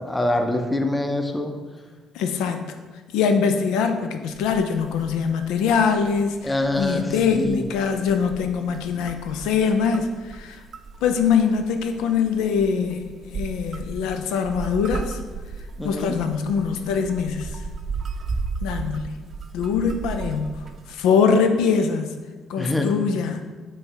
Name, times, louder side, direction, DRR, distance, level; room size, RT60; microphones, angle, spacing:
voice 1, 0.0-1.5 6.4-7.7 15.8-16.1 22.6-23.0, left 1 dB, 10° left, 5 dB, 0.7 m, -25 dB
voice 2, 2.1-2.7 3.1-10.6 11.0-15.2 15.8-17.6 18.6-19.2 19.5-22.2 22.5-23.4, left 6 dB, 85° left, 6 dB, 0.4 m, -23 dB
sound 1, 4.3-20.9, right 4 dB, 45° right, 0.5 m, -36 dB
5.5 x 3.1 x 5.5 m, 1.3 s
supercardioid pair, 75°, 0 cm